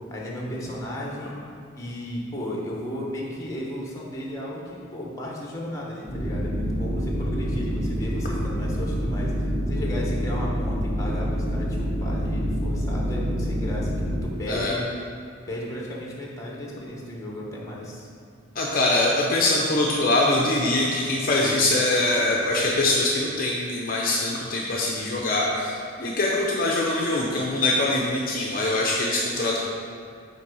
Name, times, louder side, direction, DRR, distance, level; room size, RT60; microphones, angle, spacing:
voice 1, 0.1-1.4 1.7-13.9 14.2-14.9 15.5-18.1, equal, 15° left, -3 dB, 1.1 m, -34 dB
sound 1, 6.1-14.2, equal, 5° right, 1.5 m, -27 dB
voice 2, 18.6-29.6, left 2 dB, 40° left, -3 dB, 0.6 m, -23 dB
5.7 x 4.5 x 6.2 m, 2.3 s
head